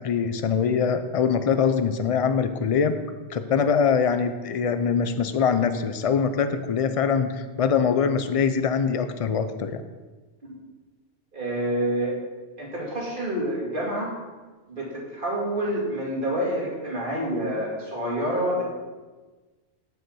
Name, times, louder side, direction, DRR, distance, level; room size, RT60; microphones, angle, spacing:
voice 1, 0.0-3.0 3.3-9.8, left 6 dB, 40° left, 9 dB, 0.5 m, -23 dB
voice 2, 11.3-12.2 12.6-14.1 14.7-18.6, right 1 dB, 45° right, -4 dB, 2.4 m, -28 dB
7.0 x 6.5 x 7.0 m, 1.3 s
omnidirectional pair, 1.2 m